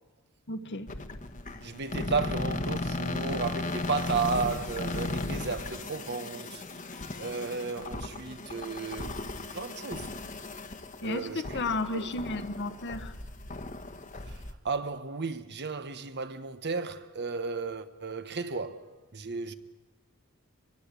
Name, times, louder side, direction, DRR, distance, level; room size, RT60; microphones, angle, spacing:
voice 1, 0.5-0.9 11.0-13.1, left 2 dB, 55° left, 1.3 m, -33 dB
sound 1, 0.9-14.5, left 2 dB, 35° left, 1.4 m, -36 dB
voice 2, 1.6-6.6 7.2-10.1 11.0-11.4 11.9-12.1 14.3-19.5, right 4 dB, 50° right, 1.3 m, -34 dB
23.0 x 22.5 x 8.4 m
head